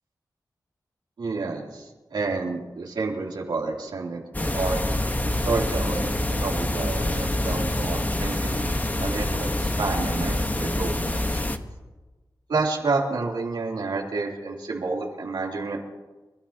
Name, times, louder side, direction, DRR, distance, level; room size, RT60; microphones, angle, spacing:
voice 1, 1.2-1.8 2.1-4.8 5.4-11.4 12.5-15.8, right 3 dB, 85° right, -2 dB, 3.1 m, -29 dB
sound 1, 4.3-11.6, left 1 dB, 20° left, 1.2 m, -26 dB
29.5 x 13.5 x 2.9 m, 1.2 s
cardioid pair, 60°, 7 cm